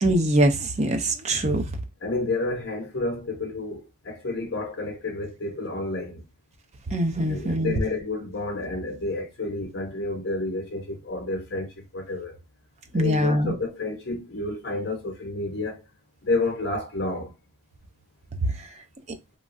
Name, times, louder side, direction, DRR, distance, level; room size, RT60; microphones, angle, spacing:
voice 1, 0.0-1.6 6.9-7.8 12.9-13.5, right 1 dB, 30° right, 0.5 m, -23 dB
voice 2, 2.0-6.2 7.3-12.4 12.9-15.8 16.2-17.3, left 2 dB, 50° left, 0.9 m, -30 dB
3.0 x 2.3 x 2.5 m
head